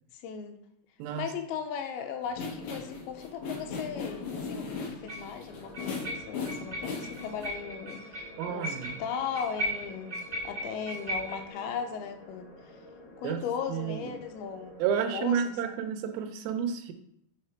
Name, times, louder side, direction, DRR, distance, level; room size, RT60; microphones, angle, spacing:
voice 1, 0.1-0.6 1.2-12.8 13.2-14.8 15.1-15.7, left 7 dB, 90° left, 6 dB, 2.6 m, -37 dB
voice 2, 1.0-1.3 8.4-9.0 13.2-13.4 13.7-14.1 14.8-16.9, right 8 dB, 80° right, 6 dB, 2.4 m, -31 dB
sound 1, 2.3-7.5, left 4 dB, 65° left, 1.9 m, -38 dB
sound 2, 2.9-3.0 5.1-5.3 5.7-11.5, equal, 55° right, 0.5 m, -37 dB
sound 3, 5.5-15.0, left 2 dB, 45° left, 1.7 m, -50 dB
6.7 x 3.5 x 4.4 m, 0.76 s
omnidirectional pair, 4.3 m